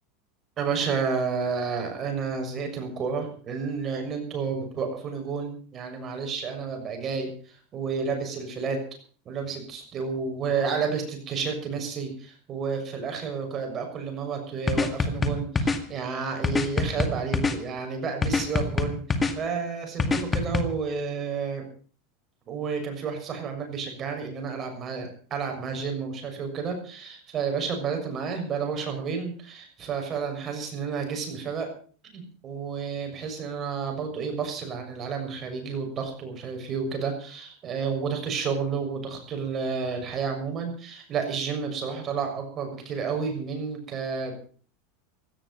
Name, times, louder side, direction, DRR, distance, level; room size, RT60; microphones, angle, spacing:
voice 1, 0.6-8.8 9.2-21.6 22.5-31.7 32.1-44.3, right 5 dB, 30° right, 4 dB, 6.4 m, -31 dB
sound 1, 14.7-15.8 16.4-17.6 18.2-19.3 20.0-20.6, left 4 dB, 15° left, 2.0 m, -24 dB
17.5 x 13.0 x 5.6 m, 0.43 s
supercardioid pair, 150°, 0 cm